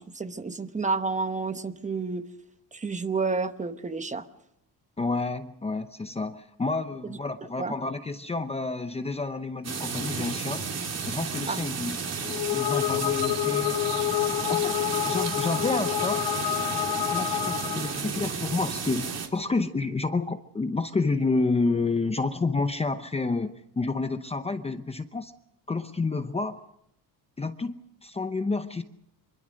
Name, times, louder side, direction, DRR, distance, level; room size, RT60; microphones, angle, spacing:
voice 1, 0.0-2.2 2.7-4.3 7.0-7.2 7.6-7.7 11.5-11.6, right 4 dB, 20° right, 10 dB, 1.0 m, -30 dB
voice 2, 5.0-10.6 11.1-12.0 12.3-13.9 14.5-14.7 15.1-16.2 17.1-25.3 25.7-26.6 27.4-28.8, left 3 dB, 15° left, 9 dB, 0.8 m, -29 dB
sound 1, 9.6-19.3, right 5 dB, 40° right, 3.1 m, -32 dB
sound 2, 12.2-18.0, left 15 dB, 70° left, 0.9 m, -28 dB
24.5 x 22.5 x 6.4 m, 0.79 s
cardioid pair, 150°, 40 cm